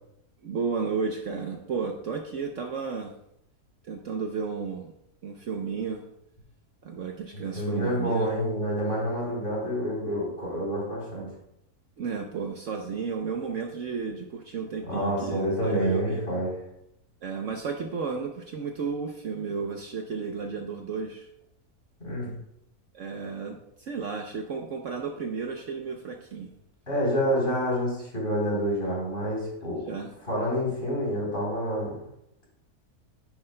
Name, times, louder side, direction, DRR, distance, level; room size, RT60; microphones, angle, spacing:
voice 1, 0.4-3.1 3.8-4.9 5.2-6.0 6.8-8.3 12.0-16.2 17.2-21.3 22.9-26.5 29.8-30.1, right 5 dB, 60° right, 3 dB, 1.0 m, -33 dB
voice 2, 7.3-11.3 14.9-16.6 22.0-22.3 26.9-29.9 30.2-32.0, equal, 35° left, -5 dB, 3.9 m, -28 dB
10.0 x 9.7 x 2.2 m, 0.78 s
omnidirectional pair, 1.6 m